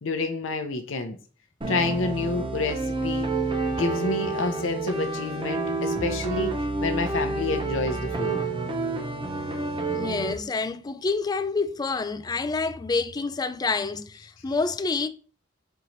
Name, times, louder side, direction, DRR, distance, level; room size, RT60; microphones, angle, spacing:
voice 1, 0.0-1.2 1.7-3.3 3.7-6.5 6.8-8.4, left 3 dB, 80° left, 0.6 m, -28 dB
sound 1, 1.6-10.4, right 3 dB, 25° right, 0.7 m, -29 dB
voice 2, 9.9-15.1, left 4 dB, 20° left, 0.3 m, -28 dB
4.6 x 2.9 x 3.9 m
head